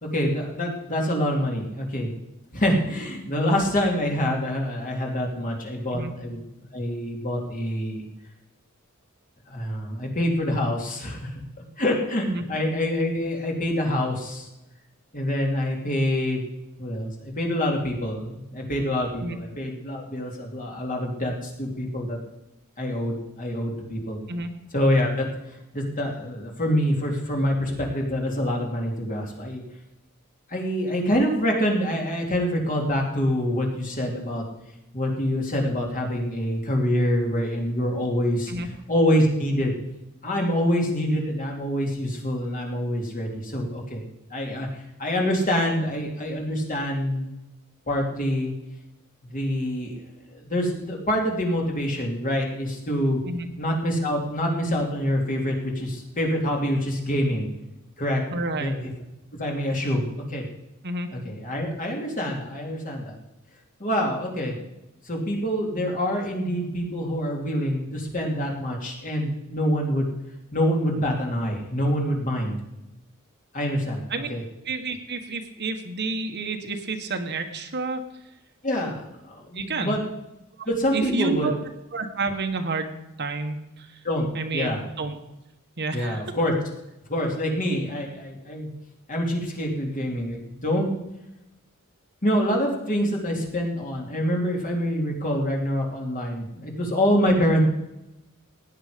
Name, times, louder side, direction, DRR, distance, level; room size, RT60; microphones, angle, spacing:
voice 1, 0.0-2.1 2.5-6.4 6.7-8.0 9.5-11.3 11.8-14.5 15.1-22.2 22.8-24.2 24.7-25.3 25.7-29.6 30.5-34.4 34.9-38.5 38.9-39.7 40.2-44.0 44.3-44.7 45.0-47.3 47.9-48.5 49.3-50.0 50.3-53.2 53.6-57.5 58.0-58.2 58.6-58.9 59.4-60.4 61.1-63.2 63.8-64.5 65.1-70.1 70.5-72.6 73.5-74.0 74.3-74.4 78.6-80.0 80.7-81.5 84.0-84.3 84.5-84.8 85.9-86.5 87.1-88.7 89.1-90.9 92.2-97.6, equal, 40° left, 0 dB, 3.0 m, -26 dB
voice 2, 58.3-58.8 60.8-61.1 74.1-74.3 74.6-78.0 79.5-80.0 80.6-81.6 81.9-82.9 83.2-84.0 84.3-85.1 85.8-86.2 97.2-97.5, right 3 dB, 55° right, 6 dB, 1.4 m, -30 dB
16.5 x 9.9 x 5.1 m, 0.92 s
head